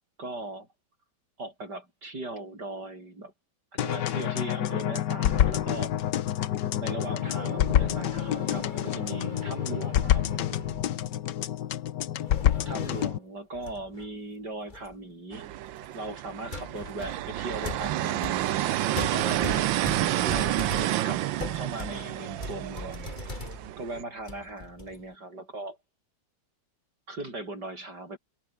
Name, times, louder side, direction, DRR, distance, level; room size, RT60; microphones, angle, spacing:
voice 1, 0.2-0.7 1.4-3.3 3.7-6.1 6.8-10.3 12.7-15.5 15.9-18.8 19.0-19.7 20.2-21.2 21.5-23.2 23.8-25.8 27.1-28.2, right 2 dB, 60° right, 8.7 m, -39 dB
sound 1, 3.8-13.2, left 11 dB, 70° left, 1.5 m, -27 dB
sound 2, 6.8-11.0 12.2-13.2 13.5-14.1 14.7-15.0 15.8-15.9 16.5-23.8 24.2-25.0, left 3 dB, 25° left, 2.4 m, -39 dB
sound 3, 15.3-24.0, right 14 dB, 85° right, 1.5 m, -29 dB
omnidirectional pair, 2.0 m